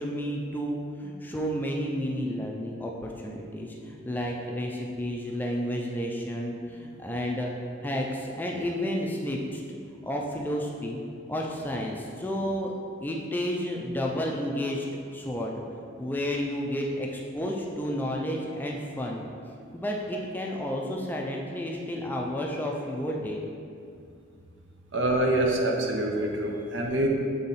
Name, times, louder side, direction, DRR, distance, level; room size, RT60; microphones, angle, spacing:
voice 1, 0.0-7.5 7.8-9.6 9.9-11.0 11.3-12.7 13.0-15.5 16.0-19.2 19.7-23.4, equal, 10° left, -1 dB, 0.4 m, -31 dB
voice 2, 24.9-27.1, right 1 dB, 65° right, 0 dB, 0.9 m, -25 dB
7.1 x 3.7 x 4.1 m, 2.4 s
head